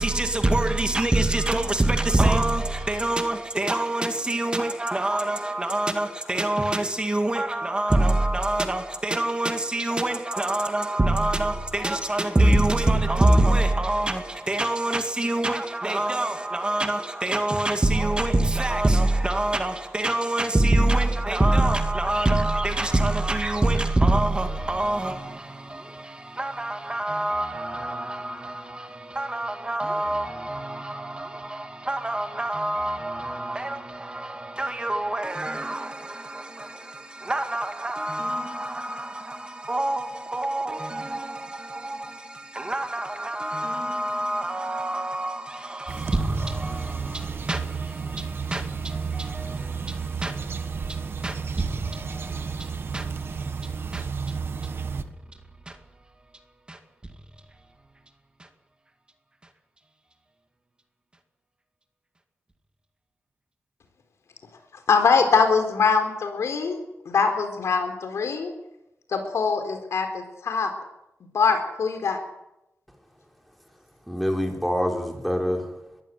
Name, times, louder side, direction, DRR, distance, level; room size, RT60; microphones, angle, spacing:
voice 1, 0.0-55.0 55.7-55.8 56.7-56.8 58.4-58.5, right 1 dB, 20° right, 2.0 m, -26 dB
sound 1, 45.9-55.0, right 5 dB, 55° right, 1.5 m, -32 dB
voice 2, 64.9-66.8 67.1-68.5 69.1-70.7 71.3-72.2, left 5 dB, 80° left, 4.2 m, -22 dB
voice 3, 74.1-76.0, equal, ahead, 4.9 m, -26 dB
22.0 x 15.0 x 9.3 m
wide cardioid pair, 110°, 5 cm